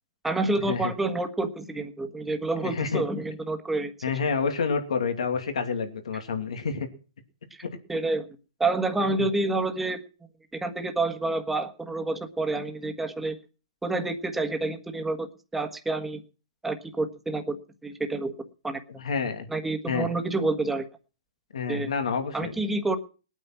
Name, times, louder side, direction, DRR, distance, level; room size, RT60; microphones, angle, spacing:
voice 1, 0.2-3.9 4.3-4.4 7.9-8.3 8.6-10.0 10.5-13.3 13.8-15.3 15.5-16.2 16.6-18.3 18.6-18.8 19.5-20.9 21.7-21.9 22.3-23.0, right 2 dB, 5° right, 5 dB, 1.5 m, -28 dB
voice 2, 2.6-3.0 4.0-6.9 19.0-19.5 19.9-20.1 21.5-22.5, left 5 dB, 85° left, 6 dB, 2.7 m, -28 dB
19.5 x 9.1 x 6.1 m, 0.37 s
hypercardioid pair, 150°, 3 cm